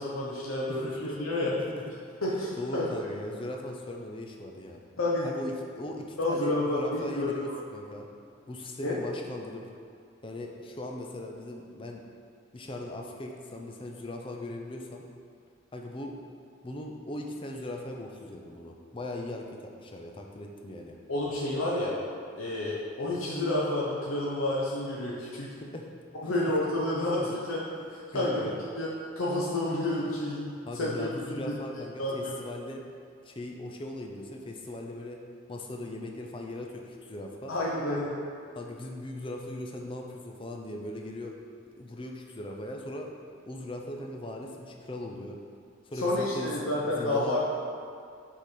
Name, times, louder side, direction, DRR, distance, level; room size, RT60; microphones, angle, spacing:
voice 1, 0.0-1.5 2.2-2.9 5.0-5.3 6.2-7.3 8.8-9.0 21.1-22.0 22.4-25.5 26.2-27.7 28.1-28.4 28.8-28.9 29.2-31.4 32.0-32.4 37.5-38.1 45.9-47.4, left 1 dB, 90° left, -6 dB, 0.9 m, -29 dB
voice 2, 0.7-1.9 2.3-4.8 5.2-8.1 8.5-9.7 10.2-12.0 12.5-15.0 15.7-16.2 16.6-21.0 25.6-25.9 26.2-26.6 27.2-27.3 28.1-28.6 30.7-32.8 33.2-35.2 35.5-37.5 38.6-41.4 41.8-43.1 43.5-45.4 45.8-47.4, left 1 dB, 25° left, 1 dB, 0.5 m, -39 dB
6.6 x 3.8 x 4.9 m, 2.4 s
head